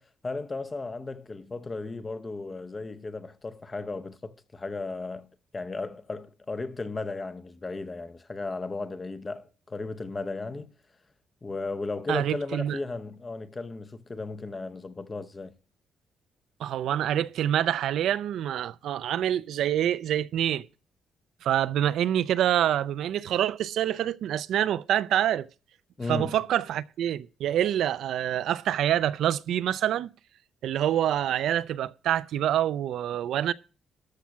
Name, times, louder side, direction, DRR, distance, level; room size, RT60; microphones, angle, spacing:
voice 1, 0.0-5.3 5.5-10.7 11.4-15.5 26.0-26.4, left 3 dB, 20° left, 0.7 m, -35 dB
voice 2, 12.1-12.8 16.6-20.7 21.4-25.5 26.1-30.1 30.6-33.5, right 11 dB, 70° right, 0.5 m, -26 dB
13.5 x 5.8 x 6.2 m
cardioid pair, 170°, 0 cm